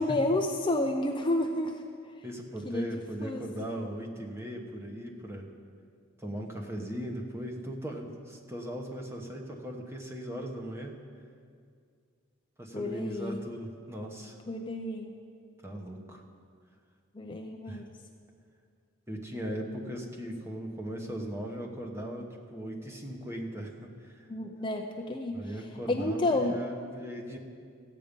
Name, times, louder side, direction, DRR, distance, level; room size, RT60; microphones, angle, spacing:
voice 1, 0.0-1.8 2.7-2.9 3.2-3.5 12.7-13.4 14.5-15.1 17.2-17.8 24.3-25.4 25.9-26.6, left 2 dB, 25° left, 3 dB, 0.5 m, -30 dB
voice 2, 2.2-5.5 6.2-11.0 12.6-14.4 15.6-16.2 17.7-17.8 19.1-24.3 25.3-27.4, equal, 15° right, 1 dB, 1.1 m, -38 dB
15.0 x 8.5 x 5.3 m, 2.2 s
head